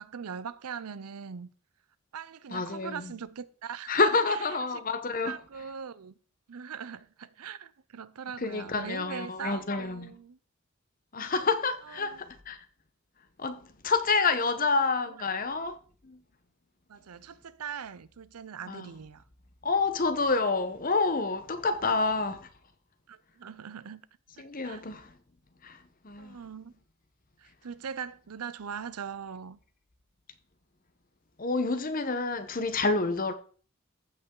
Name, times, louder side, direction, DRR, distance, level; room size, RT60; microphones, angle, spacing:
voice 1, 0.0-1.5 2.1-4.8 5.1-6.1 6.5-10.4 11.8-12.2 14.7-14.8 15.1-15.2 16.9-19.2 21.8-22.0 23.1-24.0 24.4-24.8 26.2-26.7 27.4-29.6, right 7 dB, 85° right, 0.6 m, -41 dB
voice 2, 2.5-3.1 3.9-5.4 8.4-10.1 11.1-12.6 13.4-15.8 16.0-16.2 18.7-18.9 19.6-22.5 24.4-25.1 25.6-26.4 31.4-33.3, left 4 dB, 40° left, 0.9 m, -28 dB
14.5 x 5.5 x 3.8 m
head